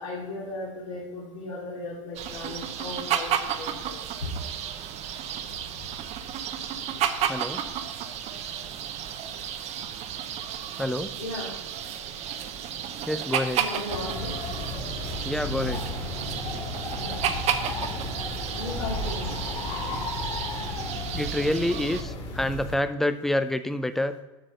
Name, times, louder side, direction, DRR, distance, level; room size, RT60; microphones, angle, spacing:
voice 1, 0.0-4.3 11.2-11.5 13.6-14.4 17.0-17.3 18.5-19.4 19.8-20.0, left 2 dB, 70° left, -6 dB, 2.7 m, -36 dB
sound 1, 2.2-22.0, right 9 dB, 40° right, 0.9 m, -32 dB
voice 2, 7.3-7.6 10.8-11.1 13.1-13.7 15.2-15.9 21.1-24.1, left 1 dB, ahead, 11 dB, 0.5 m, -27 dB
sound 2, 13.9-22.8, left 2 dB, 35° left, 2.3 m, -33 dB
7.8 x 6.3 x 5.4 m, 1.1 s
hypercardioid pair, 90°, 17 cm